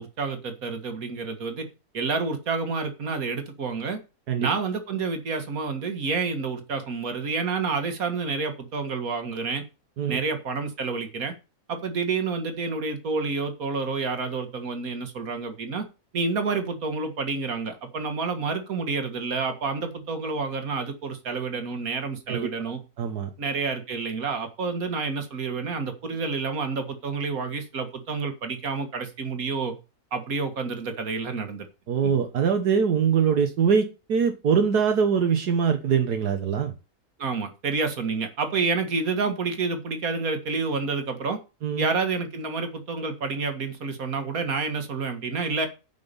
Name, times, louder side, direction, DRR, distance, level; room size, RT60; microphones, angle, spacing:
voice 1, 0.0-1.7 1.9-4.0 4.4-9.6 10.1-11.3 11.7-15.9 16.1-22.8 23.4-29.7 30.1-31.7 32.0-32.1 37.2-41.4 41.8-45.7, right 4 dB, 65° right, 7 dB, 2.2 m, -29 dB
voice 2, 23.0-23.3 31.9-36.7 41.6-41.9, right 6 dB, 80° right, 6 dB, 1.7 m, -23 dB
9.4 x 5.9 x 7.0 m, 0.29 s
omnidirectional pair, 1.6 m